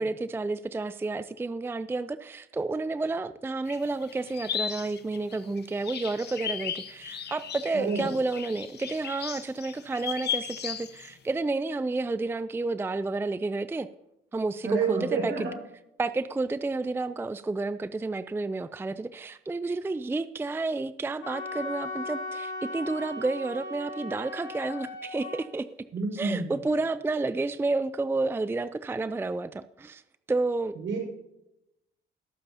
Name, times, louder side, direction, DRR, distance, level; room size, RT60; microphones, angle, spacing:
voice 1, 0.0-13.9 14.3-15.3 16.0-25.7 26.1-30.0 30.3-30.8, right 3 dB, 10° right, 14 dB, 0.4 m, -30 dB
sound 1, 3.7-11.1, left 8 dB, 55° left, 1.1 m, -36 dB
voice 2, 7.7-8.1 14.6-15.5 25.9-26.5 30.7-31.0, right 4 dB, 70° right, -1 dB, 4.7 m, -29 dB
Wind instrument woodwind instrument, 21.2-25.4, left 2 dB, 80° left, 4.3 m, -37 dB
21.0 x 7.6 x 2.8 m, 0.87 s
cardioid pair, 90°, 20 cm